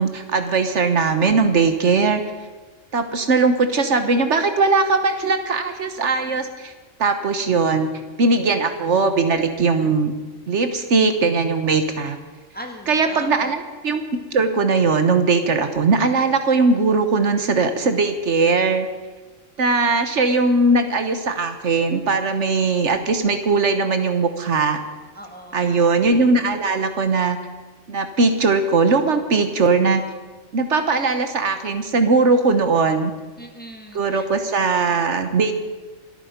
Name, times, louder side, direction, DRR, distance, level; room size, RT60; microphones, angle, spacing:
voice 1, 0.0-2.2 2.9-6.7 7.0-7.9 8.2-10.1 10.5-12.2 12.9-14.0 14.3-18.9 19.6-24.8 25.5-27.4 27.9-30.0 30.5-33.1 33.9-35.5, right 4 dB, 70° right, 8 dB, 1.4 m, -19 dB
voice 2, 12.5-13.4 25.2-25.7 33.4-34.2, equal, 5° left, 3 dB, 1.7 m, -39 dB
26.0 x 9.1 x 5.2 m, 1.3 s
omnidirectional pair, 1.3 m